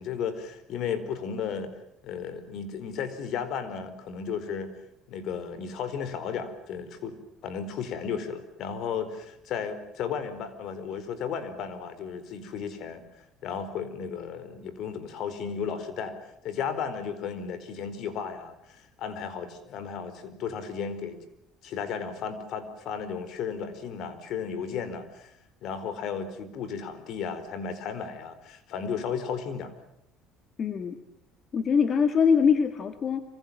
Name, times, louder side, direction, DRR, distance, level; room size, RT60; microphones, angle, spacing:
voice 1, 0.0-1.7 2.0-4.7 5.1-13.0 13.4-16.1 16.4-21.2 21.6-25.3 25.6-29.7, left 6 dB, 60° left, 12 dB, 4.6 m, -34 dB
voice 2, 30.6-31.0 31.5-33.2, left 6 dB, 40° left, 9 dB, 2.0 m, -23 dB
27.0 x 26.0 x 7.5 m, 0.76 s
cardioid pair, 115°, 0 cm